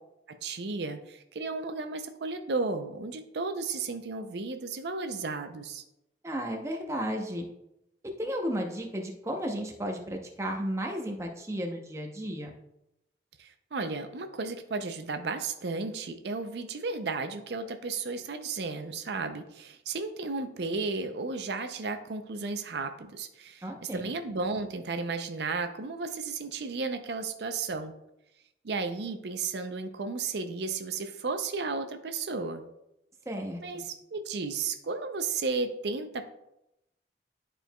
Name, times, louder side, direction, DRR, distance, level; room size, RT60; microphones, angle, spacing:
voice 1, 0.3-5.8 13.4-23.6 23.9-27.9 28.6-32.6 33.6-36.3, right 4 dB, 70° right, 7 dB, 0.5 m, -34 dB
voice 2, 6.2-7.5 8.0-12.5 23.6-24.1 33.3-33.8, equal, 15° right, 2 dB, 0.7 m, -34 dB
11.0 x 4.5 x 2.3 m, 0.85 s
head